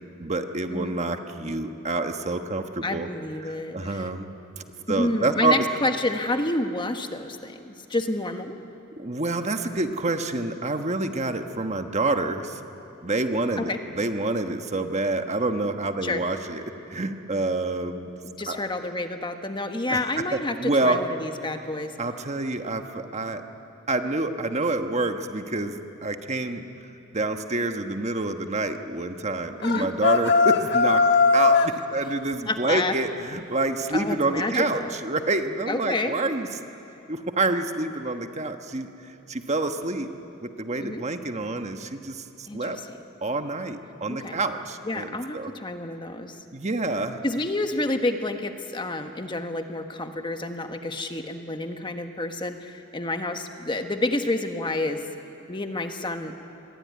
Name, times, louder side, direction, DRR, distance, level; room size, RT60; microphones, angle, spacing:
voice 1, 0.2-3.1 3.4-4.3 4.9-5.6 9.0-12.6 13.0-16.6 16.9-18.1 18.5-18.6 19.9-20.0 20.3-21.0 22.0-23.4 23.9-26.6 27.1-31.0 31.3-36.5 37.1-40.1 40.4-42.8 43.2-45.5 46.5-47.2, right 2 dB, 35° right, 6 dB, 1.3 m, -27 dB
voice 2, 2.8-4.1 4.9-8.6 13.6-13.8 16.0-16.2 18.2-21.9 29.6-29.9 32.5-32.9 33.9-34.9 35.7-36.2 40.8-41.0 42.5-42.8 44.1-44.4 44.8-46.4 47.2-55.0 55.5-56.3, left 2 dB, 25° left, 6 dB, 1.3 m, -29 dB
sound 1, 29.6-31.8, left 4 dB, 55° left, 1.4 m, -19 dB
27.0 x 22.5 x 9.6 m, 2.9 s
head